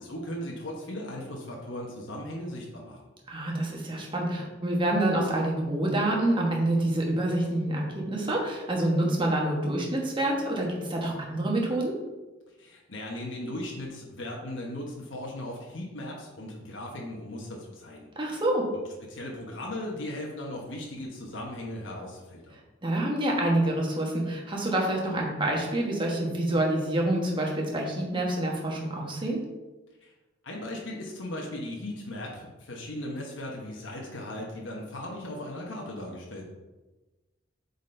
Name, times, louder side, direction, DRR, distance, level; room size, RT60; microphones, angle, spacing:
voice 1, 0.0-3.0 12.6-18.4 19.0-22.6 30.0-30.1 30.4-36.5, left 1 dB, 70° left, -2 dB, 1.1 m, -37 dB
voice 2, 3.3-11.9 18.1-18.6 22.8-29.4, right 1 dB, 25° right, -1 dB, 1.3 m, -27 dB
8.0 x 4.1 x 3.3 m, 1.2 s
head